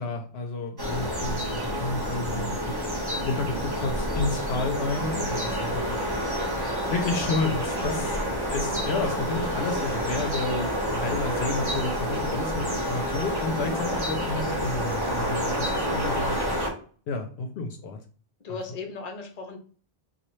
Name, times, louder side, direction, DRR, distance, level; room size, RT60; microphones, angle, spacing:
voice 1, 0.0-2.8 3.2-6.0 6.9-8.2 8.5-16.4 17.1-18.0 18.5-18.6, left 3 dB, 70° left, 4 dB, 0.8 m, -31 dB
sound 1, 0.8-16.7, equal, 20° right, 1.0 m, -28 dB
voice 2, 4.8-5.1 13.6-13.7 18.4-19.6, left 4 dB, 40° left, 4 dB, 0.8 m, -37 dB
4.1 x 2.3 x 3.1 m, 0.42 s
omnidirectional pair, 1.1 m